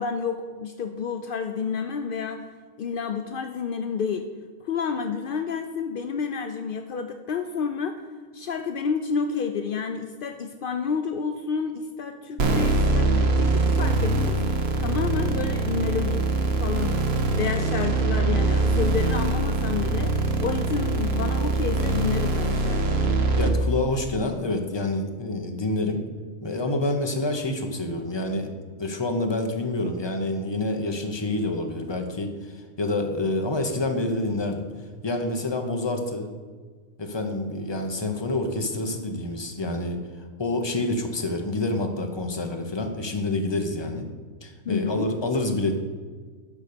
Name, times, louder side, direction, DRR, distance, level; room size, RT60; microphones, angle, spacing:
voice 1, 0.0-2.5 2.8-4.3 4.6-8.0 8.3-14.4 14.8-17.0 17.4-23.2 44.6-45.1, left 6 dB, 70° left, 7 dB, 0.5 m, -30 dB
sound 1, 12.4-23.5, right 2 dB, 50° right, 1.2 m, -23 dB
voice 2, 23.4-26.0 26.4-28.5 28.8-34.6 35.0-36.3 37.0-40.0 40.4-44.1 44.4-45.8, left 2 dB, 20° left, 4 dB, 0.8 m, -27 dB
12.0 x 4.1 x 6.8 m, 1.5 s
omnidirectional pair, 1.5 m